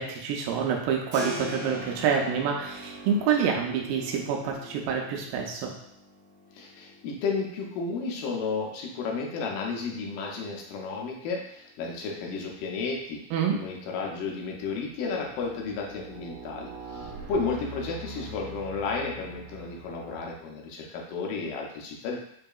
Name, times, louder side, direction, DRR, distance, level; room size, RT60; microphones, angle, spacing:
voice 1, 0.0-5.7 13.3-13.6, right 7 dB, 90° right, 0 dB, 2.3 m, -27 dB
Keyboard (musical), 1.1-11.8, left 1 dB, 50° right, 1.7 m, -43 dB
voice 2, 6.5-13.2 13.5-22.2, left 4 dB, 80° left, -1 dB, 2.3 m, -33 dB
sound 1, 12.8-13.0 13.6-20.5, right 3 dB, 65° right, 2.2 m, -44 dB
5.7 x 2.7 x 2.3 m, 0.72 s
omnidirectional pair, 4.0 m